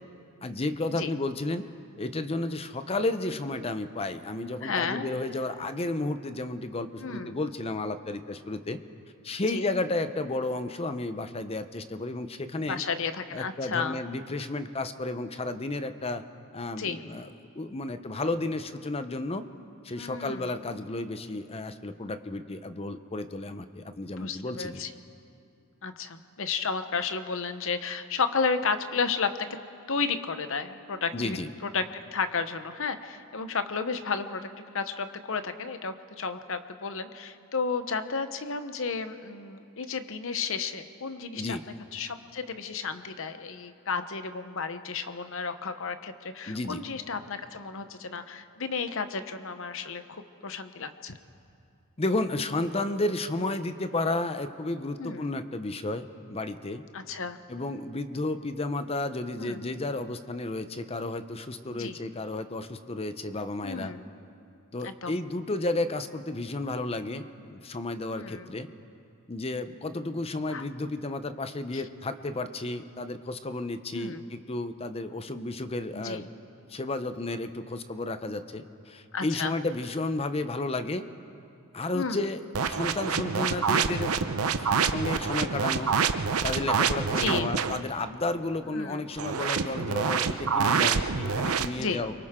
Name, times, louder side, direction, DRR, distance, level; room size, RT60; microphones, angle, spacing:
voice 1, 0.4-1.6 2.0-8.8 9.2-12.8 13.3-16.2 16.5-17.3 17.5-19.4 19.8-24.8 31.1-31.5 41.3-41.6 46.5-46.8 52.0-56.9 57.5-63.9 64.7-68.7 69.3-76.3 76.7-81.0 81.7-85.9 86.4-92.1, left 2 dB, 30° left, 10 dB, 0.7 m, -32 dB
voice 2, 4.6-5.1 7.0-7.4 9.5-9.7 12.7-14.0 16.8-17.0 20.0-20.5 24.2-24.9 25.8-29.3 29.9-31.8 32.1-34.5 34.7-41.6 41.9-51.2 55.0-55.3 56.9-57.4 59.4-59.7 61.7-62.0 63.6-64.1 64.8-65.2 68.1-68.5 70.5-70.6 71.7-71.8 73.9-74.2 75.9-76.3 79.1-79.5 81.9-82.3 87.1-87.5 88.7-89.0 91.8-92.0, left 5 dB, 65° left, 10 dB, 0.9 m, -32 dB
sound 1, 82.5-87.8 89.2-91.7, right 6 dB, 85° right, 0.7 m, -27 dB
29.5 x 23.5 x 3.7 m, 2.6 s
head